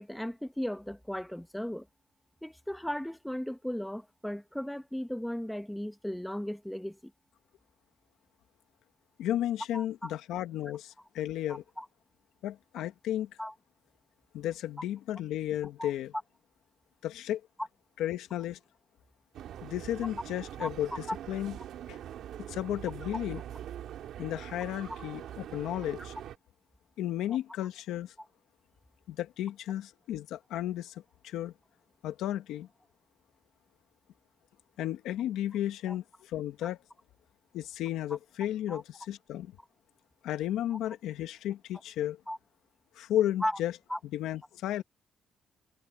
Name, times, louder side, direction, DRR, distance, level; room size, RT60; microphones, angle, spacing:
voice 1, 0.0-1.9 2.4-7.1 9.7-10.1 11.8-11.9 13.4-13.5 15.8-15.9 20.6-20.7 35.9-36.0 38.7-38.8 42.3-42.4 43.4-43.6 43.9-44.0, equal, 5° left, 1.8 m, -36 dB
voice 2, 9.2-11.6 12.4-13.3 14.3-16.1 17.0-17.4 18.0-18.6 19.6-21.6 21.9-22.0 22.4-23.4 24.2-26.1 27.0-28.1 29.1-31.5 32.0-32.7 34.8-36.8 37.5-39.5 40.2-42.2 43.0-43.7 44.1-44.8, left 12 dB, 85° left, 1.9 m, -33 dB
sound 1, 19.3-26.4, right 11 dB, 75° right, 3.7 m, -43 dB
cardioid pair, 90°, 0 cm